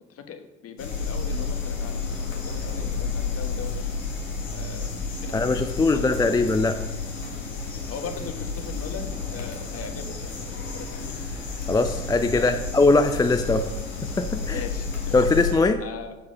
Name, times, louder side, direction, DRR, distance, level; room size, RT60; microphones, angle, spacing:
voice 1, 0.1-3.8 4.5-4.9 5.2-6.3 7.9-10.4 10.7-11.1 12.3-12.7 14.5-15.2 15.8-16.2, left 6 dB, 40° left, 7 dB, 1.2 m, -39 dB
sound 1, 0.8-15.5, left 4 dB, 80° left, 1.6 m, -31 dB
voice 2, 5.3-6.8 11.7-13.7 14.2-14.6 15.1-15.8, left 3 dB, 10° left, 7 dB, 0.4 m, -21 dB
10.5 x 4.8 x 5.5 m, 1.2 s
figure-of-eight pair, 60°, 38 cm